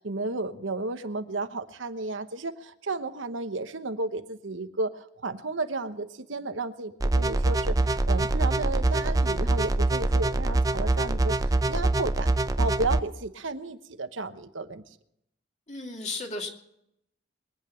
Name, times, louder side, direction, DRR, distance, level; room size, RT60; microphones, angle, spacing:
voice 1, 0.0-12.3 12.6-14.8, right 3 dB, 90° right, 9 dB, 1.1 m, -33 dB
sound 1, 7.0-13.0, right 2 dB, 20° right, 0.5 m, -24 dB
voice 2, 15.7-16.5, left 2 dB, 40° left, 2 dB, 2.4 m, -34 dB
23.0 x 9.1 x 5.7 m, 0.78 s
head